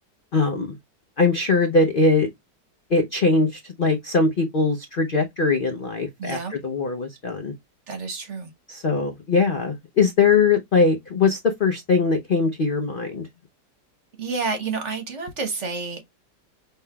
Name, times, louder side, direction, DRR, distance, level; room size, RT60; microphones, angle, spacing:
voice 1, 0.3-0.8 1.2-2.3 2.9-6.4 6.6-7.5 8.7-13.3, left 4 dB, 65° left, 0.5 m, -21 dB
voice 2, 6.2-6.5 7.9-8.5 14.2-16.0, right 4 dB, 50° right, 1.2 m, -29 dB
5.5 x 3.5 x 2.2 m
omnidirectional pair, 1.8 m